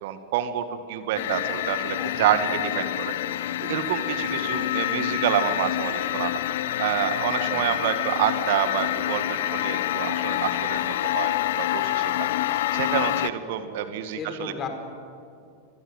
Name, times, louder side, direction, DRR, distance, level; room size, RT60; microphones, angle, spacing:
voice 1, 0.0-2.5 2.8-6.4 6.8-14.5, right 10 dB, 50° right, 10 dB, 1.7 m, -28 dB
sound 1, 1.1-13.3, left 13 dB, 55° left, 0.8 m, -27 dB
voice 2, 2.0-2.4 4.3-4.5 7.4-7.8 14.1-14.7, left 6 dB, 30° left, 5 dB, 4.4 m, -36 dB
25.0 x 21.5 x 9.6 m, 2.4 s
figure-of-eight pair, 90°, 0 cm